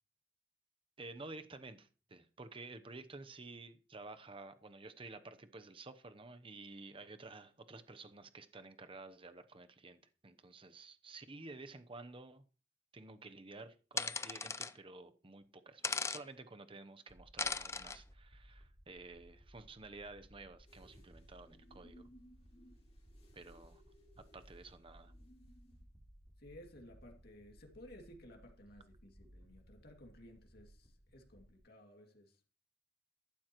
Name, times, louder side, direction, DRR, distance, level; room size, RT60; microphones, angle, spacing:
voice 1, 1.0-12.4 12.9-22.1 23.3-23.8 24.3-25.1, right 3 dB, 30° right, 0.8 m, -52 dB
sound 1, 14.0-14.7 15.8-16.2 17.4-18.0, left 4 dB, 15° left, 0.5 m, -37 dB
sound 2, 17.1-31.6, equal, ahead, 3.0 m, -61 dB
sound 3, 20.7-25.8, equal, 35° left, 2.8 m, -64 dB
voice 2, 26.4-32.4, left 1 dB, 60° left, 2.4 m, -57 dB
14.0 x 12.0 x 3.1 m
head